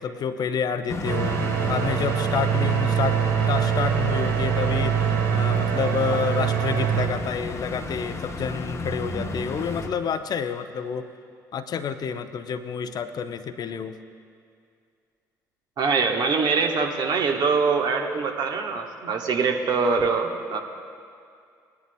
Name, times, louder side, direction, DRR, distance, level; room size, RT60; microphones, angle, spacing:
voice 1, 0.0-1.4 1.7-3.2 3.5-11.1 11.5-14.0, left 7 dB, 45° left, 10 dB, 0.6 m, -29 dB
sound 1, 0.9-9.9, left 2 dB, 30° left, 1.0 m, -33 dB
sound 2, 1.0-7.1, right 8 dB, 75° right, 1.3 m, -24 dB
voice 2, 15.8-20.6, right 4 dB, 50° right, 3 dB, 1.2 m, -23 dB
19.0 x 10.5 x 2.2 m, 2.3 s
figure-of-eight pair, 50°, 9 cm